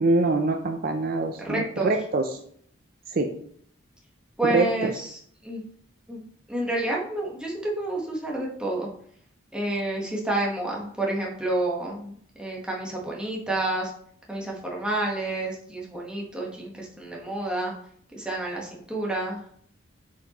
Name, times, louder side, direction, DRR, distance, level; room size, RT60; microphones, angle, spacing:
voice 1, 0.0-2.3 3.1-3.3 4.4-4.7, right 2 dB, 45° right, 5 dB, 0.4 m, -24 dB
voice 2, 1.4-1.9 4.4-5.6 6.1-8.9 9.5-13.9 14.3-17.7 18.2-19.5, right 2 dB, 5° right, -3 dB, 1.2 m, -29 dB
7.2 x 4.6 x 3.0 m, 0.63 s
head